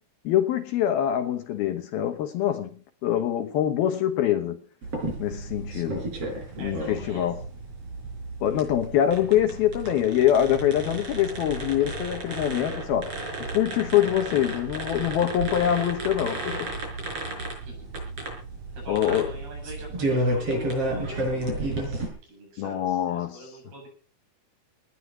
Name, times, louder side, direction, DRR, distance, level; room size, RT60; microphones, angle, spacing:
voice 1, 0.2-4.6 5.2-6.1 6.6-7.4 8.4-13.2 13.5-16.7 18.9-19.3 22.6-23.4, left 11 dB, 70° left, 2.9 m, -24 dB
sound 1, 4.8-22.1, right 2 dB, 35° right, 6.4 m, -32 dB
voice 2, 6.6-7.3 17.6-17.9 18.7-23.9, right 2 dB, 65° right, 9.7 m, -43 dB
19.0 x 11.5 x 6.0 m
omnidirectional pair, 4.9 m